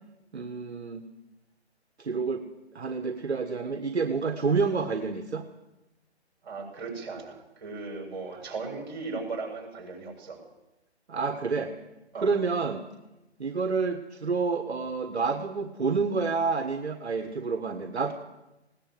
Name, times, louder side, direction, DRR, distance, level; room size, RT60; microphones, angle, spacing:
voice 1, 0.3-1.0 2.0-2.4 2.7-5.5 11.1-11.7 12.1-12.8 13.4-18.1, right 4 dB, 70° right, 7 dB, 1.7 m, -28 dB
voice 2, 6.4-10.4 12.1-12.3, right 3 dB, 45° right, 2 dB, 7.4 m, -37 dB
20.0 x 18.0 x 7.8 m, 0.98 s
figure-of-eight pair, 145°, 34 cm